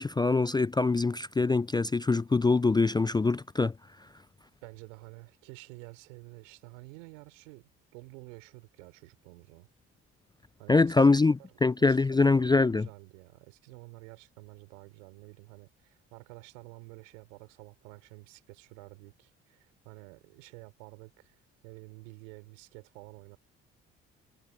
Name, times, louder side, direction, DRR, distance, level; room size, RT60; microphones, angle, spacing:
voice 1, 0.0-3.7 10.7-11.4 11.6-12.9, left 3 dB, 10° left, 0.4 m, -24 dB
voice 2, 4.6-9.7 10.6-11.5 11.8-21.4 21.6-23.4, right 27 dB, 80° right, 4.1 m, -50 dB
hypercardioid pair, 50°, 37 cm